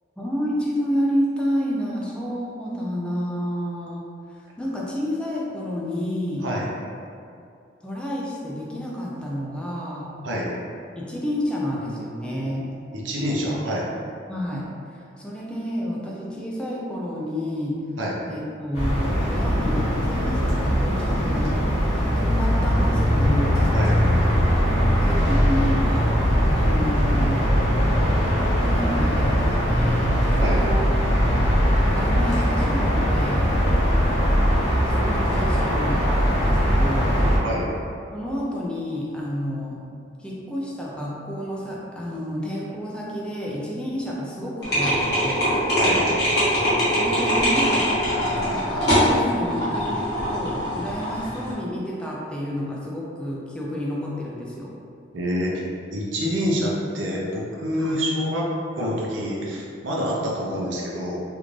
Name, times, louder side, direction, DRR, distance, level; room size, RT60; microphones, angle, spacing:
voice 1, 0.2-4.0 4.6-6.5 7.8-10.1 11.0-12.7 14.3-14.7 15.2-17.8 18.3-23.6 25.0-26.2 26.5-27.5 28.6-30.8 31.9-33.5 34.9-37.2 38.1-39.8 40.2-45.6 46.9-47.9 48.5-54.8 57.8-58.0, equal, 5° left, -5 dB, 0.4 m, -29 dB
voice 2, 12.9-13.9 18.0-18.2 23.7-24.0 30.4-30.6 37.4-37.7 45.8-46.0 55.1-55.6 55.9-61.2, equal, 80° right, -3 dB, 0.7 m, -26 dB
sound 1, 18.7-37.4, equal, 35° left, 1.0 m, -20 dB
sound 2, 44.6-51.5, equal, 60° left, 1.5 m, -22 dB
3.4 x 2.5 x 3.1 m, 2.5 s
head